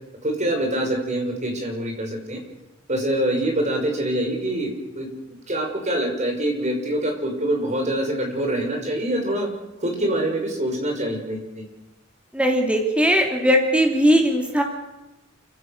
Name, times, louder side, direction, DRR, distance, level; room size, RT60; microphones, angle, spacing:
voice 1, 0.2-2.4 2.9-9.5 9.8-11.7, right 1 dB, 35° right, 2 dB, 5.9 m, -25 dB
voice 2, 12.3-14.6, equal, 5° right, 2 dB, 3.1 m, -19 dB
28.5 x 16.5 x 6.8 m, 1.0 s
head